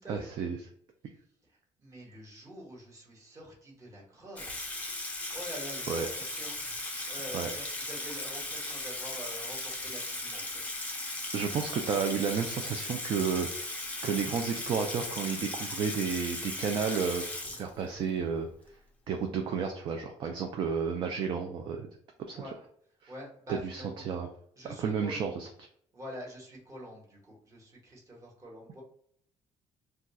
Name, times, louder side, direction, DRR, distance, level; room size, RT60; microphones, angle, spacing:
voice 1, 0.1-0.6 5.9-6.1 7.3-7.5 11.3-13.8 14.0-17.2 17.6-18.5 19.1-21.9 22.3-22.4 23.0-23.1 23.5-24.3 24.8-25.5, right 6 dB, 45° right, 4 dB, 0.3 m, -31 dB
voice 2, 1.4-4.7 5.3-6.6 7.1-10.6 22.3-22.5 23.1-24.0 24.5-25.2 25.9-28.8, equal, 25° right, -3 dB, 1.2 m, -46 dB
Water tap faucet / Sink (filling or washing), 4.4-18.1, left 2 dB, 10° left, 0.5 m, -37 dB
2.3 x 2.3 x 4.0 m, 0.63 s
cardioid pair, 150°, 12 cm